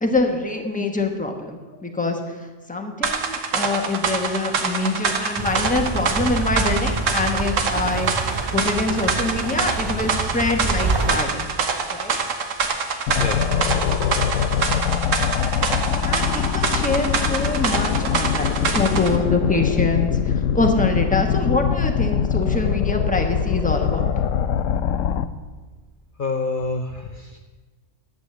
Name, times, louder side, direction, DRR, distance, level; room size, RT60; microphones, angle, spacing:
voice 1, 0.0-2.2 2.7-11.5 11.9-12.2 16.0-18.5 18.7-24.1, left 2 dB, 5° left, 3 dB, 1.1 m, -25 dB
sound 1, 3.0-19.1, right 5 dB, 90° right, 1.4 m, -25 dB
sound 2, 5.4-11.2, right 3 dB, 40° right, 0.3 m, -27 dB
sound 3, 13.1-25.3, left 8 dB, 90° left, 1.0 m, -23 dB
voice 2, 13.2-13.6 26.1-27.4, left 3 dB, 45° left, 3 dB, 0.8 m, -28 dB
11.5 x 8.1 x 6.9 m, 1.3 s
omnidirectional pair, 1.3 m